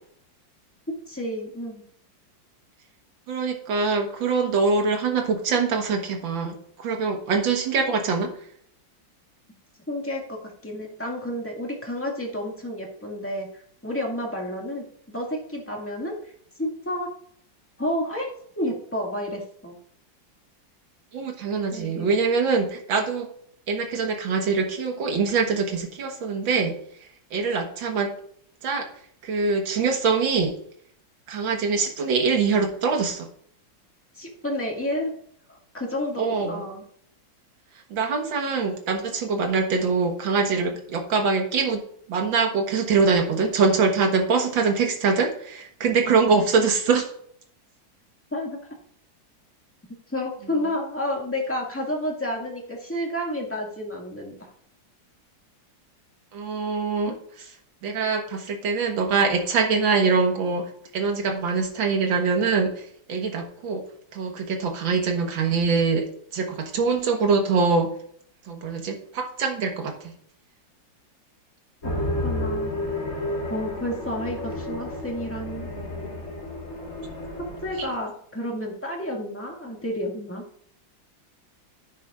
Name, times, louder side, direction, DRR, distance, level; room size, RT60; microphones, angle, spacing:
voice 1, 1.1-1.8 9.9-10.4 10.6-17.1 17.8-18.3 18.6-19.8 21.7-22.1 34.1-35.1 35.5-36.8 46.1-46.5 48.3-48.6 50.1-54.5 57.1-57.2 71.8-72.7 73.5-75.7 77.4-80.4, left 1 dB, 5° left, -1 dB, 1.9 m, -31 dB
voice 2, 3.3-8.3 21.1-23.3 23.7-26.7 27.3-28.1 28.6-28.9 29.2-30.6 31.3-33.3 36.2-36.6 37.9-41.8 42.1-47.1 56.3-57.5 57.8-63.8 64.1-67.9 68.5-70.1 77.8-77.9, right 4 dB, 85° right, 4 dB, 2.1 m, -24 dB
sound 1, 71.8-77.9, left 1 dB, 50° left, 2.9 m, -31 dB
10.5 x 9.3 x 2.5 m, 0.64 s
omnidirectional pair, 2.1 m